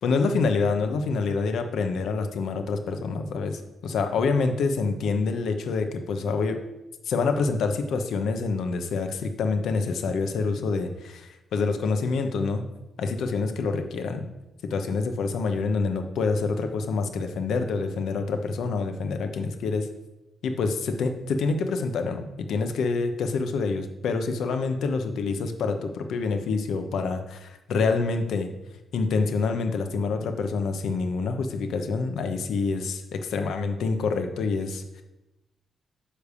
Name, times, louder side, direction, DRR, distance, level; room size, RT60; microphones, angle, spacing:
voice 1, 0.0-6.6 7.0-12.6 13.0-14.3 14.6-19.9 20.4-28.5 28.9-35.0, left 4 dB, 80° left, 6 dB, 0.9 m, -27 dB
9.9 x 3.4 x 6.8 m, 0.97 s
wide cardioid pair, 155°, 0 cm